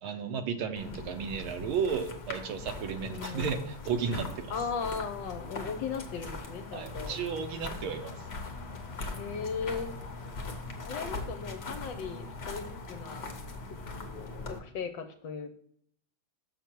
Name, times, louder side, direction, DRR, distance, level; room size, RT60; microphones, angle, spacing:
voice 1, 0.0-4.5 6.7-8.1, right 6 dB, 80° right, 8 dB, 1.6 m, -33 dB
sound 1, 0.8-14.6, left 3 dB, 40° left, 1.0 m, -40 dB
voice 2, 3.0-3.6 4.5-7.2 9.2-10.0 10.8-13.2 14.5-15.5, left 6 dB, 70° left, 8 dB, 1.3 m, -37 dB
6.8 x 6.5 x 4.5 m, 0.69 s
omnidirectional pair, 2.3 m